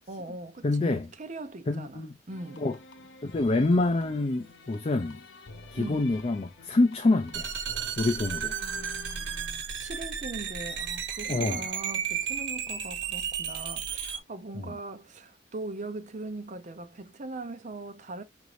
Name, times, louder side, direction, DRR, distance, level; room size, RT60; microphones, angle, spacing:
voice 1, 0.1-2.7 5.8-6.1 8.5-18.2, right 2 dB, 40° right, 0.6 m, -40 dB
voice 2, 0.6-1.1 1.7-2.1 2.6-2.8 3.2-5.2 5.7-7.5 8.0-8.6 11.3-11.6 14.7-14.8, left 2 dB, 35° left, 0.4 m, -26 dB
sound 1, 2.3-9.5, left 3 dB, 80° left, 0.7 m, -49 dB
sound 2, 7.3-14.2, right 7 dB, 75° right, 1.2 m, -33 dB
5.9 x 2.6 x 3.2 m
head